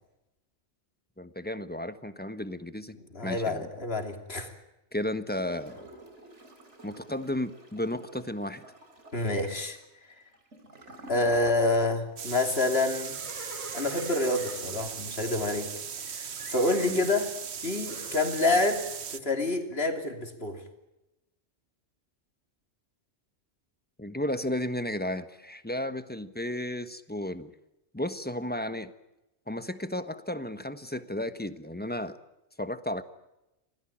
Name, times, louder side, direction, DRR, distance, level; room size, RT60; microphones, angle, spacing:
voice 1, 1.2-3.0 3.2-3.7 4.9-5.9 6.8-8.6 16.9-17.0 24.0-27.5 27.9-28.9 29.5-32.2 32.6-33.0, left 1 dB, 10° left, 11 dB, 1.2 m, -33 dB
voice 2, 3.1-4.5 9.1-9.8 11.1-13.2 13.7-15.7 16.1-17.3 17.6-18.8 19.1-20.6, left 2 dB, 60° left, 5 dB, 3.3 m, -27 dB
Gurgling / Toilet flush, 5.3-12.1 12.4-12.5, right 1 dB, 85° right, 4.1 m, -50 dB
sound 1, 12.2-19.2, right 7 dB, 70° right, 1.3 m, -38 dB
Livestock farm animals working animals, 12.9-16.0 16.4-17.1 17.8-18.2, right 1 dB, 25° right, 6.2 m, -45 dB
27.0 x 18.0 x 8.9 m, 0.95 s
omnidirectional pair, 1.2 m